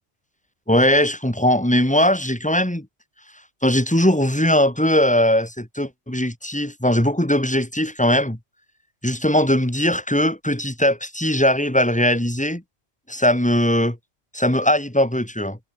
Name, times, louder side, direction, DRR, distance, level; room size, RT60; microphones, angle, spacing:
voice 1, 0.7-2.9 3.6-8.4 9.0-12.6 13.1-14.0 14.3-15.6, left 1 dB, 5° left, 3.0 m, -19 dB
omnidirectional pair, 1.2 m